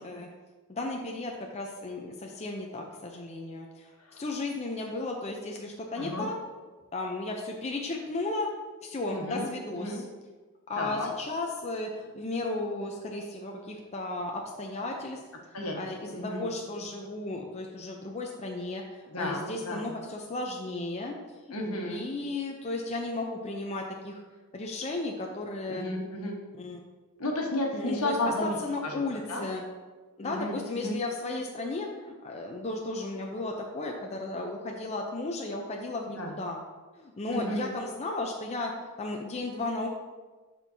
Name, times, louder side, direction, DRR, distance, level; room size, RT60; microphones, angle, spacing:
voice 1, 0.7-6.4 6.9-8.5 8.8-10.0 10.7-15.2 15.7-21.1 21.4-21.5 21.8-24.2 24.5-25.8 26.6-26.8 27.7-29.6 30.2-36.6 37.0-38.7 39.0-39.9, left 2 dB, 30° left, 1 dB, 0.5 m, -34 dB
voice 2, 6.0-6.3 9.1-9.5 9.7-10.0 10.7-11.1 15.5-15.7 16.1-16.5 19.1-19.9 21.5-22.0 25.7-26.4 27.2-28.6 28.8-29.4 30.2-31.0 36.2-36.3 37.3-37.7, left 1 dB, 75° left, 0 dB, 1.3 m, -32 dB
11.5 x 4.4 x 2.7 m, 1.3 s
head